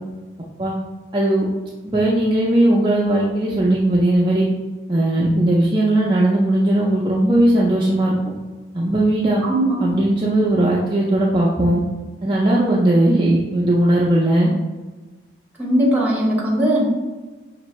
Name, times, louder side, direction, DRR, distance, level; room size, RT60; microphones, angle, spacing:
voice 1, 1.1-1.5 1.9-4.5 4.9-8.1 8.7-9.4 9.8-11.8 12.2-14.5, right 1 dB, 25° right, -5 dB, 0.4 m, -18 dB
voice 2, 9.4-9.8 15.6-16.8, right 1 dB, 10° right, -4 dB, 0.9 m, -19 dB
5.4 x 2.5 x 3.0 m, 1.3 s
head